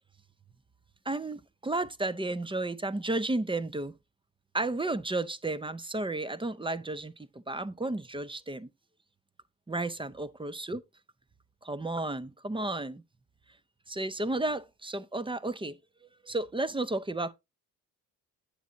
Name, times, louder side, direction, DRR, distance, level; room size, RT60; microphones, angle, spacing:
voice 1, 1.1-3.9 4.5-8.7 9.7-10.8 11.6-13.0 13.9-15.8 16.2-17.3, right 2 dB, 15° right, 0.6 m, -32 dB
8.4 x 7.1 x 2.7 m
cardioid pair, 70°, 38 cm